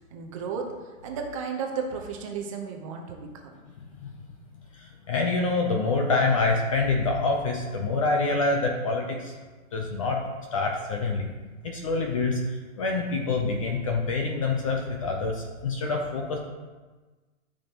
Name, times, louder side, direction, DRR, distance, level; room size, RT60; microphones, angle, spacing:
voice 1, 0.1-3.6, right 5 dB, 25° right, 2 dB, 0.8 m, -34 dB
voice 2, 4.8-9.3 9.7-10.2 10.5-11.3 11.6-12.4 12.8-16.4, left 3 dB, 25° left, 1 dB, 0.6 m, -26 dB
13.0 x 5.3 x 2.9 m, 1.3 s
hypercardioid pair, 160°, 41 cm